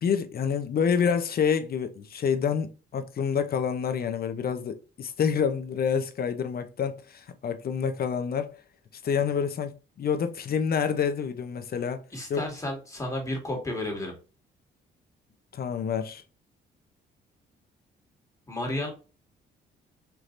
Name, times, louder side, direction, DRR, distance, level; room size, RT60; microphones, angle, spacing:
voice 1, 0.0-8.6 9.0-12.0 12.3-12.5 15.5-16.2, left 7 dB, 50° left, 0.8 m, -28 dB
voice 2, 12.1-14.1 18.5-18.9, left 1 dB, 15° left, 2.1 m, -32 dB
4.7 x 3.2 x 2.6 m
cardioid pair, 90°, 20 cm